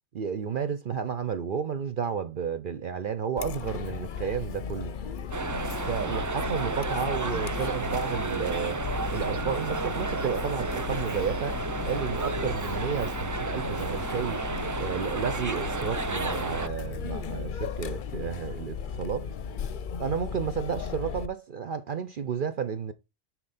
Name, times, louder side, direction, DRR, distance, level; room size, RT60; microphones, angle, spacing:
voice 1, 0.1-4.9 5.9-8.8 9.1-14.4 14.8-19.3 20.0-22.9, right 7 dB, 55° right, 0.8 m, -32 dB
Chatter, 3.4-21.3, left 6 dB, 55° left, 0.7 m, -36 dB
sound 1, 5.3-16.7, right 4 dB, 30° right, 0.3 m, -32 dB
10.0 x 4.4 x 4.2 m
omnidirectional pair, 1.1 m